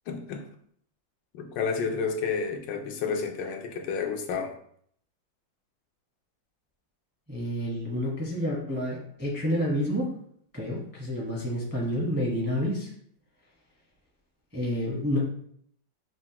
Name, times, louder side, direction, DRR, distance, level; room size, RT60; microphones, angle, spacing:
voice 1, 0.1-0.5 1.3-4.5, left 5 dB, 80° left, 4 dB, 1.3 m, -30 dB
voice 2, 7.3-10.1 10.5-12.9 14.5-15.2, equal, 15° right, -4 dB, 0.5 m, -29 dB
5.9 x 2.1 x 2.8 m, 0.64 s
omnidirectional pair, 2.0 m